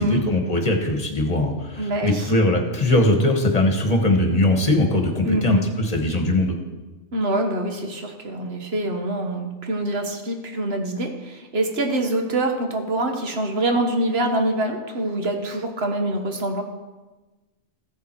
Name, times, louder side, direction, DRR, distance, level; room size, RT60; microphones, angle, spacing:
voice 1, 0.0-6.6, left 1 dB, 35° left, 3 dB, 1.6 m, -20 dB
voice 2, 1.8-2.3 5.2-5.6 7.1-16.6, right 1 dB, 60° right, 4 dB, 1.6 m, -25 dB
15.5 x 7.1 x 4.6 m, 1.2 s
omnidirectional pair, 1.2 m